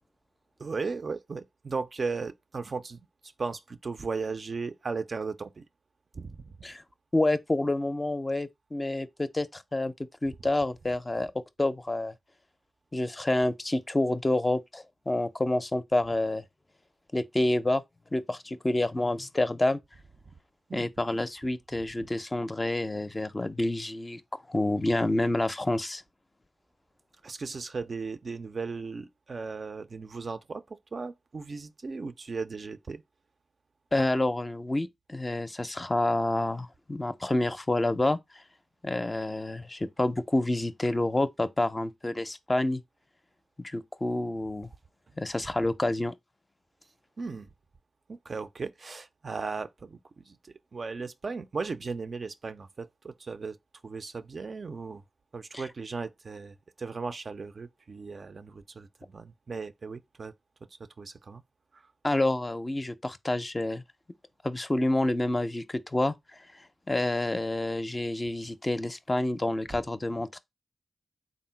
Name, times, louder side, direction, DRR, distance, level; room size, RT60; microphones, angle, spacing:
voice 1, 0.6-5.6 6.1-6.6 20.3-20.4 20.7-20.9 27.2-33.0 47.2-47.5 48.1-53.6 53.8-55.0 55.3-60.3 61.0-61.4 61.7-61.9 69.7-69.8, right 4 dB, 60° right, 0.4 m, -37 dB
voice 2, 7.1-9.9 10.2-11.3 11.6-12.1 12.9-16.4 17.1-17.8 18.1-19.8 20.7-26.0 33.9-38.2 38.8-42.8 43.6-44.7 45.2-46.1 62.0-63.8 64.4-66.1 66.9-70.4, left 2 dB, 30° left, 0.4 m, -28 dB
3.7 x 2.0 x 4.3 m
cardioid pair, 40°, 0 cm